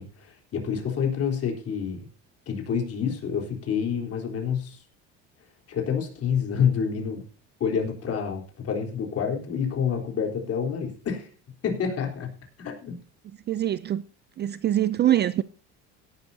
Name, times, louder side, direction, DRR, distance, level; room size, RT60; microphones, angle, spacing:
voice 1, 0.0-2.1 2.5-4.8 5.7-7.2 7.6-11.3 11.6-12.3 12.6-13.0, left 7 dB, 45° left, 3.9 m, -28 dB
voice 2, 13.5-14.0 14.4-15.4, right 12 dB, 30° right, 0.4 m, -23 dB
17.5 x 11.0 x 2.8 m
supercardioid pair, 110°, 33 cm